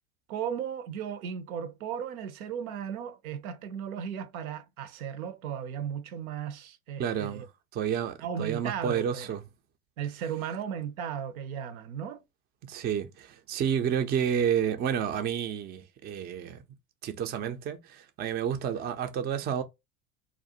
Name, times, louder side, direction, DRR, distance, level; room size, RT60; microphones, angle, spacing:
voice 1, 0.3-7.5 8.2-9.3 10.0-12.2, right 8 dB, 75° right, 0.6 m, -36 dB
voice 2, 7.0-7.5 7.7-9.4 12.6-16.6 17.0-19.6, right 8 dB, 25° right, 0.4 m, -30 dB
2.5 x 2.1 x 2.7 m
hypercardioid pair, 80°, 43 cm